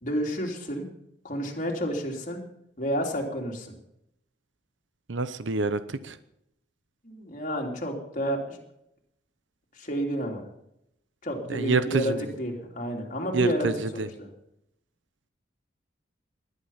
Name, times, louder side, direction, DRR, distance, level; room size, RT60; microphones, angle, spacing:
voice 1, 0.0-0.9 1.2-2.4 2.8-3.7 7.0-8.6 9.8-10.4 11.2-14.3, equal, 40° left, 0 dB, 3.3 m, -30 dB
voice 2, 5.1-6.2 11.5-12.2 13.3-14.1, right 3 dB, 80° right, 13 dB, 0.9 m, -27 dB
20.0 x 11.0 x 5.8 m, 0.80 s
head